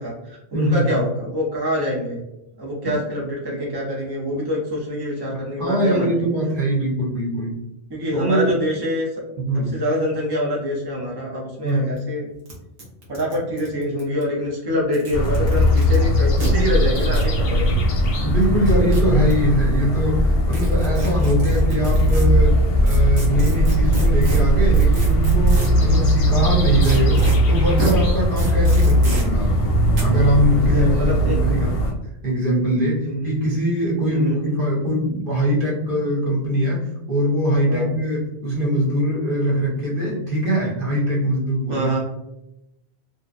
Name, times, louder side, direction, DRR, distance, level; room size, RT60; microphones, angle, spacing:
voice 1, 0.0-2.2 2.6-6.3 7.9-9.1 9.7-12.3 13.1-17.8 25.9-26.1 30.7-31.4 33.0-33.4 34.1-34.4 37.7-38.0 41.7-42.0, equal, 30° right, -3 dB, 0.4 m, -25 dB
voice 2, 0.5-1.0 2.8-3.0 5.3-7.6 8.1-8.5 9.4-9.7 11.6-11.9 18.2-31.7 32.2-36.8 37.1-41.9, equal, 55° right, -5 dB, 1.0 m, -22 dB
sound 1, 11.7-11.8 12.0-12.1 12.5-12.6 12.8-14.2 14.8-16.0 16.4-16.5 16.9-17.3 18.4-19.3 20.5-22.2 22.9-25.8 26.8-27.4 27.8-27.9 28.4-29.2 29.9-30.0, right 1 dB, 85° right, 1.1 m, -32 dB
sound 2, 15.1-31.9, equal, 65° left, 0.7 m, -18 dB
2.7 x 2.1 x 2.4 m, 0.87 s
omnidirectional pair, 1.1 m